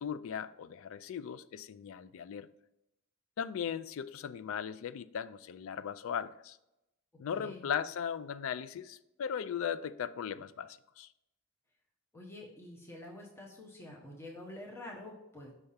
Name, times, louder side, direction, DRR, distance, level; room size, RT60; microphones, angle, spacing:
voice 1, 0.0-2.5 3.4-6.6 7.2-11.1, left 8 dB, 65° left, 0.3 m, -38 dB
voice 2, 7.3-7.7 12.1-15.5, left 1 dB, 10° left, 0.9 m, -47 dB
5.5 x 3.4 x 5.5 m
head